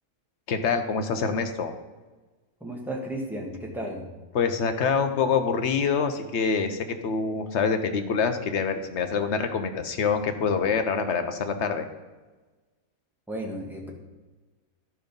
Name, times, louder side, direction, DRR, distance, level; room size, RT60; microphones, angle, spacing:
voice 1, 0.5-1.7 4.3-11.9, left 5 dB, 55° left, 7 dB, 1.0 m, -26 dB
voice 2, 2.6-4.1 13.3-13.9, right 1 dB, ahead, -1 dB, 1.5 m, -34 dB
11.5 x 5.2 x 5.3 m, 1.3 s
omnidirectional pair, 1.5 m